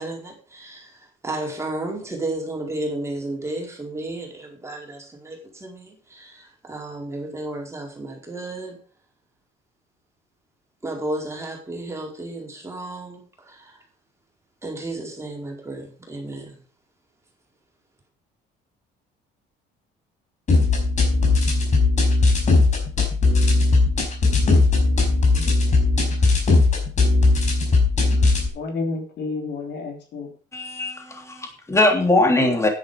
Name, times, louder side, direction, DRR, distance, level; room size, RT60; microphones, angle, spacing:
voice 1, 0.0-8.8 10.8-13.8 14.6-16.5, right 2 dB, 15° right, 0 dB, 4.6 m, -33 dB
sound 1, 20.5-28.5, left 3 dB, 40° left, 4.9 m, -18 dB
voice 2, 25.3-25.8 28.5-30.3, left 3 dB, 60° left, 3 dB, 3.4 m, -31 dB
voice 3, 30.5-32.7, left 2 dB, 15° left, 3 dB, 3.3 m, -20 dB
10.5 x 10.0 x 5.1 m, 0.39 s
cardioid pair, 125°, 19 cm